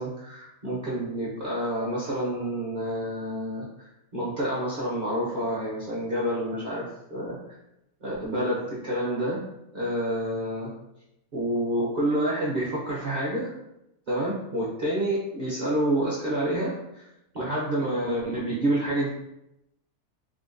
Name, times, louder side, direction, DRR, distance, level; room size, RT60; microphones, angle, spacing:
voice 1, 0.0-7.4 8.0-9.4 9.7-10.7 11.3-13.5 14.1-17.1 17.3-19.1, right 1 dB, 45° right, -8 dB, 0.6 m, -28 dB
3.6 x 2.2 x 2.5 m, 0.85 s
omnidirectional pair, 1.5 m